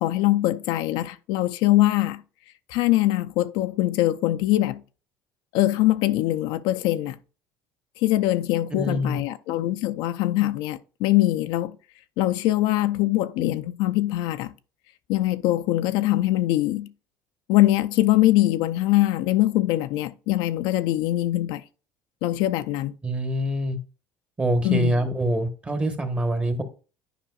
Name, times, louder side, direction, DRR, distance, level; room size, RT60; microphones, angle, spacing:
voice 1, 0.0-2.2 2.7-4.8 5.5-7.2 8.0-11.8 12.2-14.5 15.1-16.9 17.5-21.6 22.2-22.9 24.6-24.9, left 16 dB, 80° left, 0.5 m, -22 dB
voice 2, 8.7-9.2 23.0-23.8 24.4-26.6, right 1 dB, 15° right, 1.1 m, -25 dB
10.0 x 5.0 x 2.4 m
cardioid pair, 135°, 7 cm